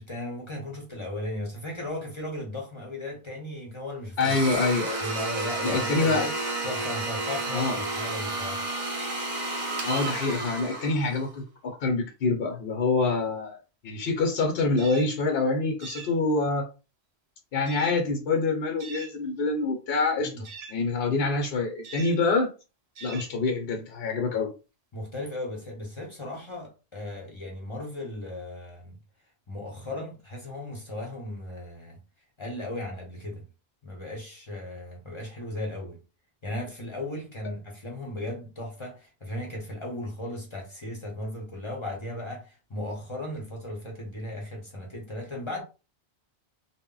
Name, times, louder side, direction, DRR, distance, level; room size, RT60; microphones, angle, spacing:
voice 1, 0.0-4.3 5.0-6.3 6.6-8.6 20.2-20.4 24.9-29.0 29.5-32.0 32.4-33.5 33.8-36.0 36.4-45.6, left 1 dB, 30° left, 0.7 m, -36 dB
voice 2, 4.2-5.0 5.6-6.3 7.5-7.8 9.8-13.6 13.8-16.7 17.5-22.5 23.0-24.5, left 3 dB, 65° left, 0.8 m, -26 dB
Domestic sounds home sounds, 4.2-11.3, right 2 dB, 50° right, 0.8 m, -31 dB
sound 1, 14.8-15.1 15.8-16.2 17.7-18.0 18.8-19.2 20.4-20.8 21.8-22.2 23.0-23.3, right 5 dB, 75° right, 0.9 m, -42 dB
2.0 x 2.0 x 3.7 m
omnidirectional pair, 1.1 m